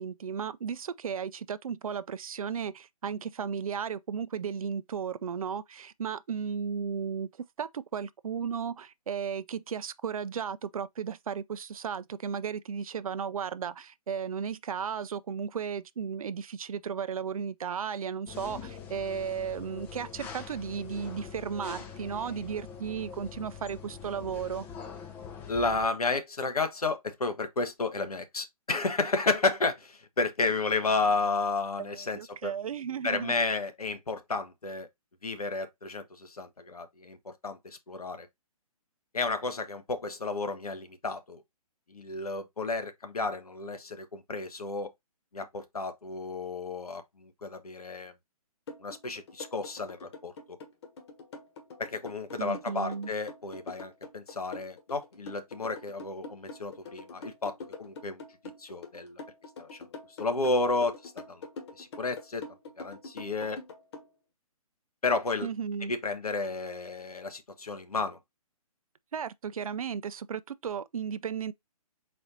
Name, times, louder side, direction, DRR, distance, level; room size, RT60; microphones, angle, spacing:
voice 1, 0.0-7.3 7.6-24.7 31.8-33.3 52.4-53.1 65.4-65.9 69.1-71.5, right 7 dB, 65° right, 0.4 m, -35 dB
sound 1, 18.3-25.9, left 7 dB, 10° left, 0.5 m, -44 dB
voice 2, 25.5-32.5 33.0-34.9 35.2-38.3 39.1-41.4 41.9-44.9 45.3-48.1 48.8-50.3 51.8-58.2 58.6-59.2 59.6-59.8 60.2-61.5 61.8-62.4 62.8-63.6 65.0-65.5 65.8-68.2, left 3 dB, 75° left, 1.0 m, -32 dB
sound 2, 48.7-64.1, left 3 dB, 45° left, 1.3 m, -44 dB
4.2 x 2.6 x 3.9 m
figure-of-eight pair, 135°, 19 cm